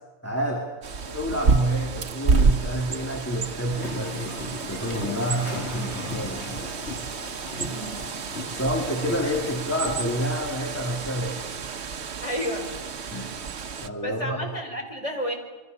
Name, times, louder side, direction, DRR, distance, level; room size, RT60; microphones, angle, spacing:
voice 1, 0.2-0.7 1.1-4.4 4.7-6.8 8.5-11.5 13.1-13.4 13.8-14.5, equal, 10° left, -1 dB, 2.7 m, -29 dB
Bird, 0.8-13.9, right 5 dB, 70° right, 1.3 m, -29 dB
sound 1, 3.7-10.4, left 1 dB, 70° left, 2.8 m, -37 dB
voice 2, 7.7-8.1 12.2-12.7 14.0-15.3, equal, 30° left, 2 dB, 4.6 m, -31 dB
28.0 x 23.5 x 6.7 m, 1.2 s
omnidirectional pair, 1.2 m